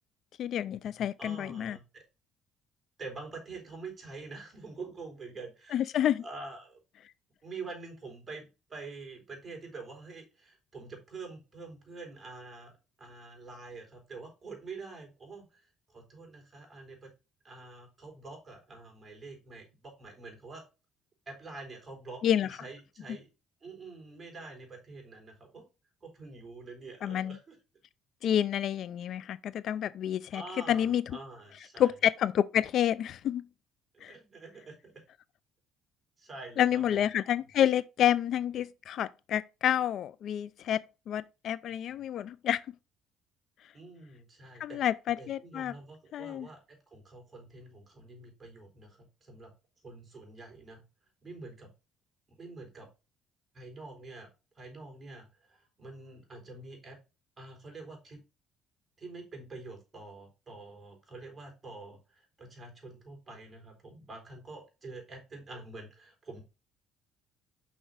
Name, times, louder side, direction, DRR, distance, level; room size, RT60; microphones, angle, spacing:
voice 1, 0.4-1.8 5.7-6.2 22.2-22.5 27.0-27.4 28.2-30.4 30.7-31.0 31.8-33.4 34.0-34.1 36.6-42.6 44.6-45.7 46.1-46.5, left 10 dB, 60° left, 0.4 m, -29 dB
voice 2, 1.2-2.0 3.0-5.8 6.2-6.8 7.4-17.1 17.4-20.6 21.3-23.3 23.6-25.7 26.0-27.6 30.3-31.9 33.9-35.0 36.2-37.0 43.7-44.8 45.2-49.5 49.8-50.8 51.2-51.7 52.3-52.9 53.5-54.3 54.6-57.0 57.4-58.2 59.0-66.4, right 3 dB, 25° right, 3.9 m, -46 dB
6.1 x 6.0 x 3.8 m
cardioid pair, 115°, 0 cm